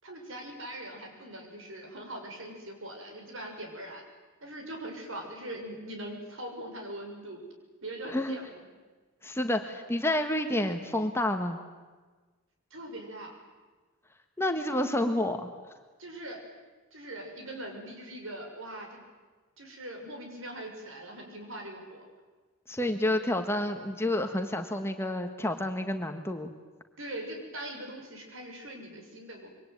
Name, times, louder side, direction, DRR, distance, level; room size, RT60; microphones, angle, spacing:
voice 1, 0.0-4.0 4.4-7.4 7.8-8.6 12.7-13.4 16.0-16.4 16.9-19.0 19.6-22.1 27.0-29.5, right 1 dB, 65° right, 3 dB, 6.6 m, -41 dB
voice 2, 9.2-11.6 14.4-15.5 22.7-26.5, left 1 dB, 10° left, 6 dB, 1.5 m, -29 dB
26.0 x 23.5 x 9.4 m, 1.3 s
head